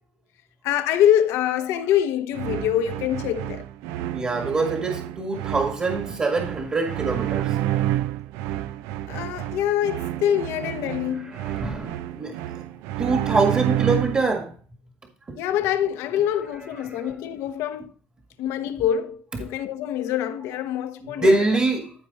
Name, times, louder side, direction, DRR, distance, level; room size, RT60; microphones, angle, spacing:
voice 1, 0.6-3.6 9.1-11.3 15.4-17.9 18.4-21.4, left 10 dB, 80° left, 0.9 m, -25 dB
sound 1, 2.3-14.4, right 13 dB, 90° right, 0.4 m, -29 dB
voice 2, 4.1-7.6 11.3-12.6 13.0-14.5 16.9-17.1 21.0-21.9, right 3 dB, 30° right, 1.9 m, -24 dB
12.5 x 4.6 x 4.2 m
cardioid pair, 95°, 5 cm